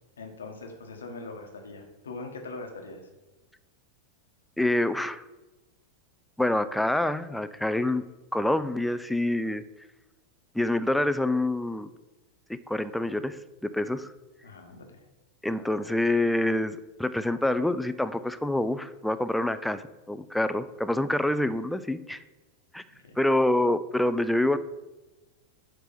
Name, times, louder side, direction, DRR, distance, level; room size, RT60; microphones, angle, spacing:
voice 1, 0.2-3.1 14.4-15.0 22.9-23.3, left 3 dB, 70° left, 4 dB, 1.1 m, -42 dB
voice 2, 4.6-5.2 6.4-8.0 8.3-9.6 10.5-11.9 12.7-13.4 13.7-14.1 15.4-22.2 22.7-22.8 23.2-24.6, left 1 dB, 5° left, 12 dB, 0.3 m, -26 dB
7.4 x 3.4 x 5.7 m, 1.1 s
figure-of-eight pair, 90°, 0 cm